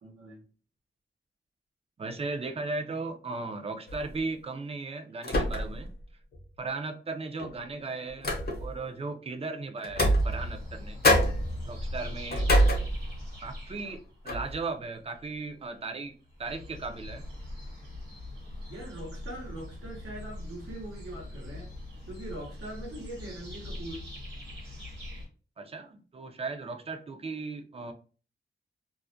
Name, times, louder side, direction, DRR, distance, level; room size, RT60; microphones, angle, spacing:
voice 1, 0.0-0.4 18.7-21.7 22.1-24.0, right 1 dB, 90° right, -2 dB, 0.9 m, -42 dB
voice 2, 2.0-5.9 6.6-8.3 8.6-11.0 11.7-12.5 13.4-17.3 25.6-27.9, right 3 dB, 30° right, 6 dB, 0.4 m, -36 dB
sound 1, 3.9-4.2 5.2-5.9 6.3-6.4 7.4-8.8 9.8-10.8 11.0-13.4 13.8-13.9 14.3-14.6, equal, 50° left, 0.7 m, -26 dB
sound 2, 10.0-15.5 16.0-25.3, left 1 dB, 55° right, 1.2 m, -42 dB
2.4 x 2.1 x 2.5 m, 0.39 s
wide cardioid pair, 110°, 20 cm